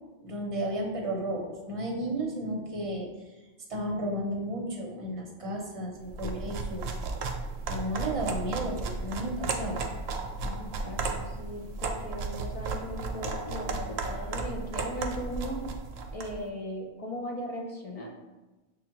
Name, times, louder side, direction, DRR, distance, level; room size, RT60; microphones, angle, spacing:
voice 1, 0.2-3.1 3.7-6.9 7.7-9.8, right 1 dB, 35° right, -1 dB, 0.8 m, -33 dB
sound 1, 6.1-16.4, right 3 dB, 70° right, 0.8 m, -34 dB
voice 2, 10.4-15.7 16.1-18.1, equal, 45° left, 1 dB, 0.5 m, -38 dB
6.9 x 2.4 x 2.9 m, 1.1 s
omnidirectional pair, 1.2 m